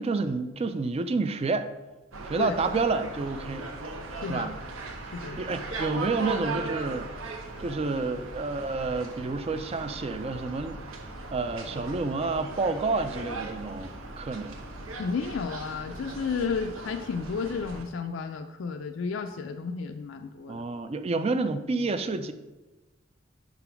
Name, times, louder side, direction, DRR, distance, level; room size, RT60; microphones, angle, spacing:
voice 1, 0.0-1.7 2.2-3.7 4.3-4.6 5.4-7.1 7.6-11.0 11.3-14.6 20.5-22.3, right 3 dB, 30° right, 11 dB, 0.3 m, -29 dB
sound 1, 2.1-17.8, right 2 dB, 90° right, 0.9 m, -38 dB
voice 2, 4.1-4.5 5.1-5.4 15.0-20.6, left 5 dB, 65° left, 5 dB, 0.4 m, -32 dB
5.8 x 3.9 x 5.7 m, 1.1 s
head